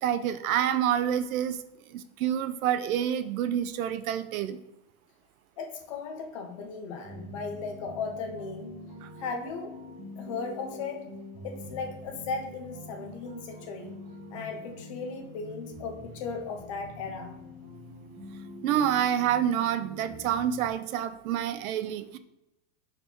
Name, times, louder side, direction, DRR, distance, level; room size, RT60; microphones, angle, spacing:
voice 1, 0.0-1.6 1.9-4.6 9.0-9.1 18.6-22.2, right 10 dB, 85° right, 12 dB, 0.7 m, -28 dB
voice 2, 5.6-8.7 9.2-9.7 10.2-11.0 11.4-13.9 14.3-17.3, left 4 dB, 25° left, 4 dB, 0.3 m, -36 dB
sound 1, 7.0-20.7, equal, 35° right, 1.9 m, -45 dB
4.4 x 4.2 x 5.3 m, 0.92 s
supercardioid pair, 170°, 41 cm